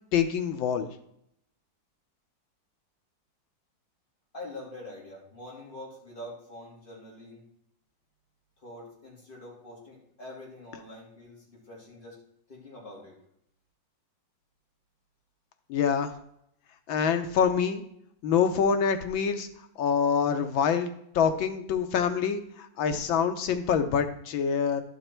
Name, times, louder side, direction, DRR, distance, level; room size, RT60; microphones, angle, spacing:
voice 1, 0.1-0.9 15.7-16.1 16.9-17.8 18.2-19.5 19.8-24.8, left 7 dB, 85° left, 7 dB, 1.7 m, -26 dB
voice 2, 4.3-7.4 8.6-12.2 12.5-13.2, left 1 dB, 25° left, -4 dB, 3.1 m, -45 dB
12.0 x 5.7 x 4.5 m, 0.72 s
omnidirectional pair, 2.1 m